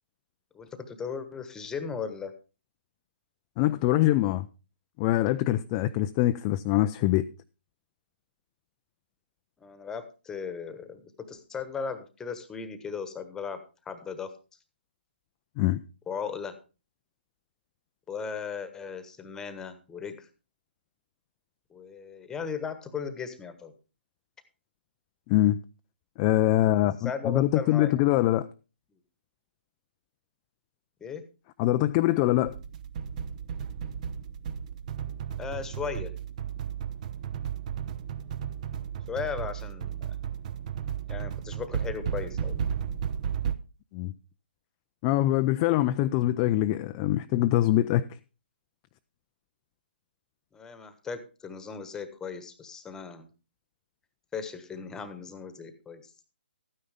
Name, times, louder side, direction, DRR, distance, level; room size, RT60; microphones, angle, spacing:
voice 1, 0.5-2.3 9.6-14.3 16.1-16.6 18.1-20.3 21.7-23.7 27.0-28.1 31.0-31.3 35.4-36.1 39.1-40.2 41.1-42.6 50.5-53.3 54.3-56.1, left 6 dB, 10° left, 1.3 m, -37 dB
voice 2, 3.6-4.5 5.0-7.2 15.6-15.8 25.3-25.6 26.2-28.5 31.6-32.6 43.9-44.1 45.0-48.1, left 15 dB, 25° left, 0.4 m, -24 dB
sound 1, 32.4-43.5, right 8 dB, 40° right, 0.8 m, -34 dB
13.5 x 9.6 x 3.5 m
figure-of-eight pair, 135°, 6 cm